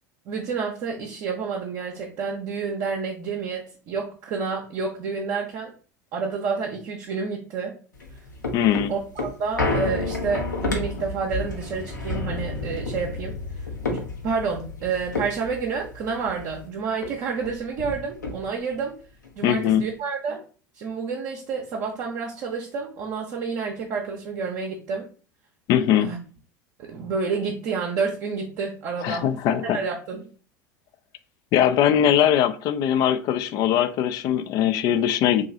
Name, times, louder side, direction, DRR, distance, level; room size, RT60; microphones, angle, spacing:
voice 1, 0.3-5.7 6.1-7.8 8.9-13.4 13.9-18.9 19.4-20.4 20.8-25.1 26.0-26.2 26.8-30.3, right 5 dB, 45° right, 0 dB, 0.6 m, -29 dB
sound 1, 7.9-16.7 17.0-17.1 17.4-18.8 19.2-19.3, left 2 dB, 80° left, 0.8 m, -31 dB
voice 2, 8.5-8.9 19.4-19.8 25.7-26.1 29.0-29.8 31.5-35.5, left 10 dB, 40° left, 13 dB, 0.3 m, -21 dB
3.0 x 2.5 x 3.7 m, 0.39 s
figure-of-eight pair, 75°, 10 cm